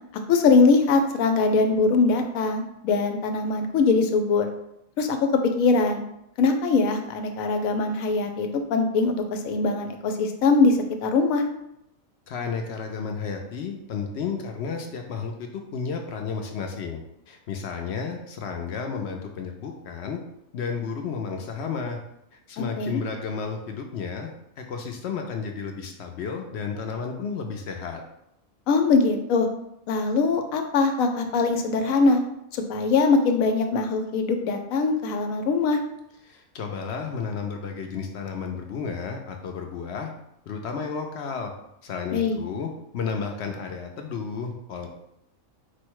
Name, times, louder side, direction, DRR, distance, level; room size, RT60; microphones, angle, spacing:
voice 1, 0.3-4.5 5.0-5.2 5.4-6.0 6.4-11.4 22.6-23.0 28.7-29.5 29.9-32.2 32.5-35.8 42.1-42.4, left 4 dB, 85° left, 5 dB, 1.0 m, -22 dB
voice 2, 12.3-20.2 20.5-22.0 22.5-24.3 24.6-28.0 36.3-40.1 40.5-41.5 41.8-44.9, left 5 dB, 65° left, 3 dB, 0.7 m, -32 dB
4.5 x 2.1 x 4.5 m, 0.81 s
omnidirectional pair, 1.4 m